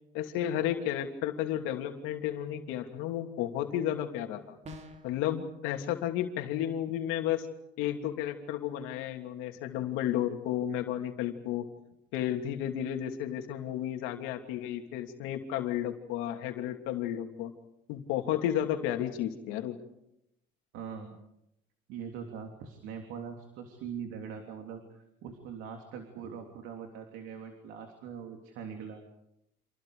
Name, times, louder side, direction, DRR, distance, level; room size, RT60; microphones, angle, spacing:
voice 1, 0.1-4.5 5.0-7.5 7.8-11.6 12.1-17.5 17.9-19.8, left 11 dB, 90° left, 4 dB, 2.9 m, -32 dB
sound 1, 4.6-5.2, left 1 dB, 35° right, 3.1 m, -45 dB
voice 2, 20.7-21.2 21.9-29.0, right 7 dB, 80° right, 4 dB, 3.3 m, -42 dB
30.0 x 27.0 x 5.0 m, 0.81 s
cardioid pair, 125°, 20 cm